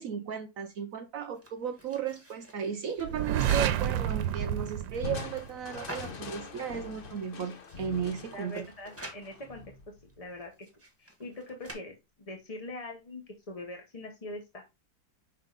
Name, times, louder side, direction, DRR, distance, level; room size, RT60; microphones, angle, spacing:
voice 1, 0.0-8.7, right 7 dB, 70° right, 0.8 m, -35 dB
sound 1, 1.3-3.7 4.4-6.2 6.8-6.9 7.0-7.1 7.5-9.2 10.1-11.7, right 1 dB, 10° right, 1.3 m, -48 dB
sound 2, 3.0-5.9, right 10 dB, 90° right, 1.3 m, -30 dB
Crushing, 5.0-10.4, left 5 dB, 75° left, 0.5 m, -43 dB
voice 2, 8.3-9.6 10.2-10.5 11.0-14.7, left 1 dB, 30° left, 0.6 m, -43 dB
5.6 x 4.3 x 3.9 m
omnidirectional pair, 2.0 m